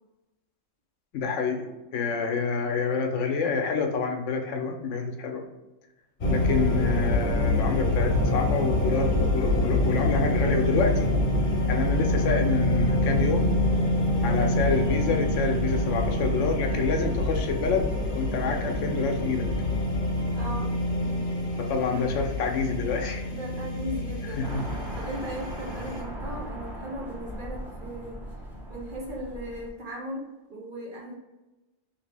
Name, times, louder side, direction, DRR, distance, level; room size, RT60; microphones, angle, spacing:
voice 1, 1.1-5.4 6.3-11.1 11.7-13.6 14.2-17.9 18.1-19.5 21.6-23.3 24.3-24.6, left 4 dB, 75° left, 3 dB, 0.9 m, -28 dB
sound 1, 6.2-26.0, left 1 dB, 40° left, 0.9 m, -26 dB
voice 2, 20.3-21.3 21.9-22.2 23.3-28.2 28.7-31.1, equal, 50° right, -1 dB, 0.7 m, -38 dB
sound 2, 24.4-29.7, right 1 dB, ahead, 0.5 m, -38 dB
2.9 x 2.7 x 3.3 m, 1.0 s
omnidirectional pair, 1.3 m